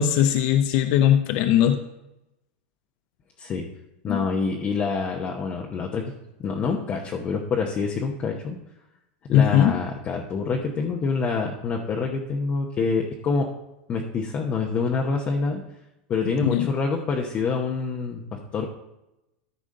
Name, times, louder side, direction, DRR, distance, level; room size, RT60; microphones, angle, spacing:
voice 1, 0.0-1.8 4.1-4.2 9.3-9.7 16.4-16.7, left 10 dB, 55° left, 8 dB, 0.6 m, -19 dB
voice 2, 4.0-6.0 6.4-8.6 9.3-13.5 13.9-15.6 16.1-18.7, left 4 dB, 30° left, 1 dB, 0.9 m, -26 dB
13.5 x 5.1 x 3.7 m, 0.92 s
supercardioid pair, 140°, 5 cm